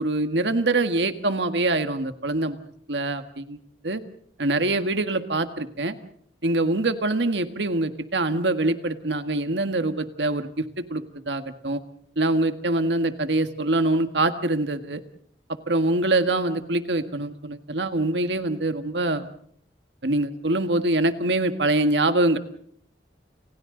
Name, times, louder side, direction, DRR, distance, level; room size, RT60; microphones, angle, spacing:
voice 1, 0.0-2.6 2.9-3.6 3.8-4.0 4.4-5.9 6.4-11.8 12.2-15.0 15.7-19.3 20.0-22.4, right 2 dB, 80° right, 8 dB, 1.7 m, -24 dB
30.0 x 29.0 x 3.9 m, 0.63 s
head